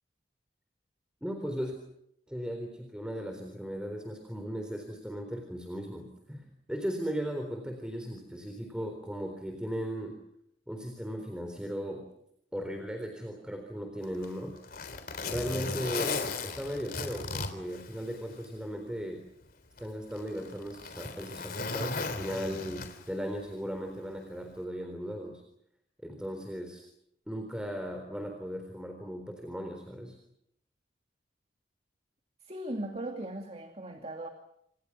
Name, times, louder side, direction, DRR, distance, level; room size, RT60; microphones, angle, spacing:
voice 1, 1.2-1.7 2.3-10.2 10.7-12.1 12.5-14.5 15.2-19.2 19.8-25.4 26.0-26.8 27.3-30.2, equal, 5° right, 4 dB, 3.9 m, -37 dB
Zipper (clothing), 14.0-18.5 18.9-19.0 19.8-23.2 24.4-24.6, left 4 dB, 55° left, 3.7 m, -36 dB
voice 2, 32.4-34.3, right 1 dB, 35° right, 4 dB, 2.3 m, -38 dB
29.0 x 27.0 x 6.1 m, 0.75 s
head